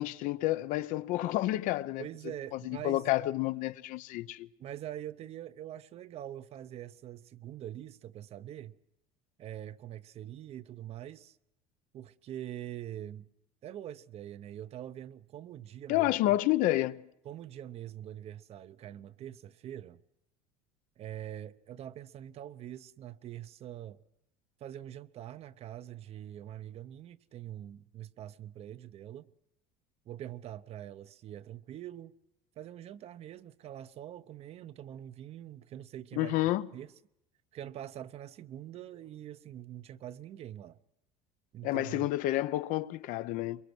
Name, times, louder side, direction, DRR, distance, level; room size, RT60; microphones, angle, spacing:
voice 1, 0.0-2.1 2.7-4.5 15.9-17.0 36.2-36.7 41.6-43.6, left 15 dB, 65° left, 0.7 m, -29 dB
voice 2, 2.0-3.1 4.6-8.8 9.4-11.4 11.9-13.3 13.6-16.1 17.2-20.0 21.0-24.0 24.6-29.3 30.1-32.1 32.6-36.3 36.7-36.9 37.5-40.8 41.5-42.1, right 11 dB, 45° right, 0.7 m, -44 dB
23.0 x 23.0 x 6.2 m
cardioid pair, 125°, 15 cm